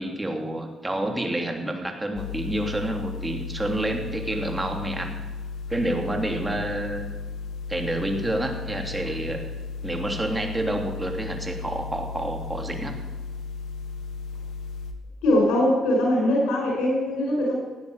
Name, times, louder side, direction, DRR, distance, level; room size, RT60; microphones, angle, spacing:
voice 1, 0.0-5.2 5.7-7.1 7.7-9.4 9.8-12.9, right 1 dB, 15° right, 3 dB, 3.0 m, -28 dB
sound 1, 2.1-14.9, left 4 dB, 65° left, 1.9 m, -35 dB
voice 2, 15.2-17.6, left 1 dB, 90° left, -1 dB, 5.7 m, -21 dB
17.0 x 9.4 x 8.0 m, 1.4 s
cardioid pair, 90°, 0 cm